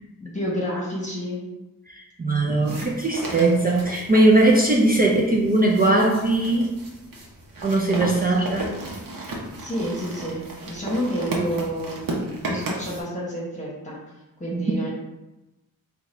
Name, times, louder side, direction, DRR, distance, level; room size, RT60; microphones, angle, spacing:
voice 1, 0.2-1.4 4.8-5.0 8.1-8.2 9.5-12.0 12.5-14.0 14.4-14.9, equal, 20° left, -5 dB, 1.0 m, -29 dB
voice 2, 1.9-6.7 7.6-8.6 14.5-14.6, right 2 dB, 25° right, -2 dB, 0.4 m, -20 dB
sound 1, 2.6-13.0, right 2 dB, 65° right, 0.9 m, -34 dB
3.8 x 2.3 x 4.3 m, 0.98 s
wide cardioid pair, 135°, 35 cm